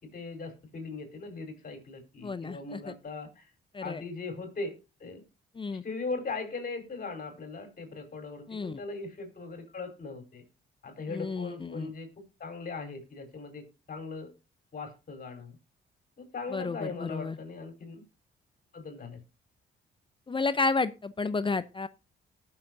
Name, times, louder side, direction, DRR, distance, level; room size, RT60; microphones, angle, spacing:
voice 1, 0.0-3.5 3.8-4.7 5.0-5.2 5.8-10.4 10.8-14.3 14.7-15.6 16.2-18.0 18.7-19.2, left 3 dB, 45° left, 5 dB, 4.4 m, -39 dB
voice 2, 2.2-2.9 3.7-4.0 5.6-5.8 8.5-8.8 11.1-11.9 16.5-17.4 20.3-21.9, left 4 dB, 25° left, 14 dB, 0.6 m, -31 dB
19.0 x 6.8 x 2.6 m, 0.29 s
cardioid pair, 90°, 20 cm